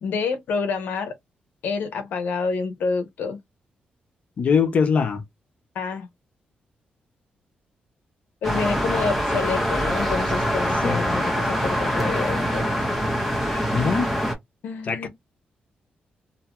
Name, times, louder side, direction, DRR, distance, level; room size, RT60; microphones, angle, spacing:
voice 1, 0.0-1.1 1.6-3.4 5.7-6.1 8.4-12.7 14.6-15.1, left 5 dB, 80° left, 0.8 m, -28 dB
voice 2, 4.4-5.2 10.8-11.0 13.5-14.1 14.8-15.1, left 6 dB, 45° left, 0.7 m, -22 dB
sound 1, 8.4-14.3, equal, 5° right, 0.8 m, -24 dB
2.7 x 2.2 x 2.9 m
wide cardioid pair, 150°, 3 cm